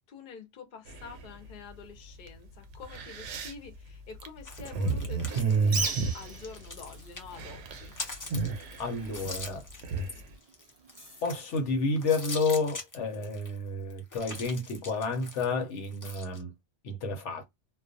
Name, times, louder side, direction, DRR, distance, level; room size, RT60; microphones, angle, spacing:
voice 1, 0.1-7.9, left 5 dB, 55° left, 0.8 m, -47 dB
sound 1, 0.9-1.5 2.3-2.4 2.7-7.0 7.2-7.9 8.1-10.2, right 4 dB, 80° right, 0.9 m, -31 dB
sound 2, 4.5-7.4 7.7-11.6 12.0-13.6 13.9-16.4, left 3 dB, 30° left, 0.3 m, -43 dB
Bird, 5.6-12.3, right 4 dB, 55° right, 0.4 m, -41 dB
voice 2, 8.8-9.6 11.2-16.5 16.8-17.4, left 3 dB, 80° left, 1.0 m, -30 dB
2.3 x 2.2 x 2.5 m
omnidirectional pair, 1.2 m